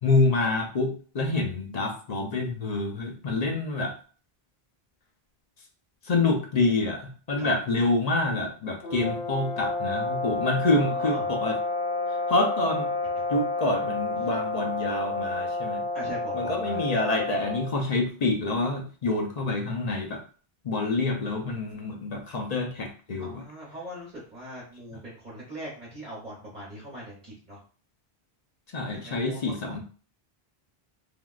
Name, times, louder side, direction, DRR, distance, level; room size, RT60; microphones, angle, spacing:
voice 1, 0.0-3.9 6.1-11.6 12.3-12.9 13.3-15.8 16.3-20.2 20.6-23.4 28.7-29.8, left 2 dB, 50° left, 2 dB, 0.6 m, -27 dB
sound 1, 8.8-17.8, left 2 dB, 75° left, 1.1 m, -30 dB
voice 2, 10.8-11.3 15.9-16.8 23.2-27.6 28.9-29.8, right 1 dB, 45° right, -7 dB, 1.2 m, -41 dB
3.4 x 2.3 x 2.3 m, 0.39 s
omnidirectional pair, 1.0 m